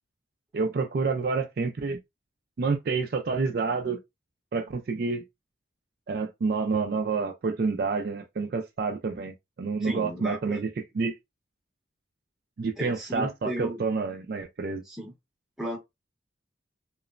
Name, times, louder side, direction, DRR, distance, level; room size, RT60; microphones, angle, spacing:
voice 1, 0.5-2.0 2.6-4.0 4.5-5.2 6.1-10.7 10.9-11.1 12.6-14.8, right 4 dB, 50° right, 0.3 m, -28 dB
voice 2, 9.8-10.7 12.8-13.8 14.8-15.1 15.6-15.8, right 1 dB, 5° right, 0.8 m, -34 dB
2.9 x 2.0 x 2.4 m
head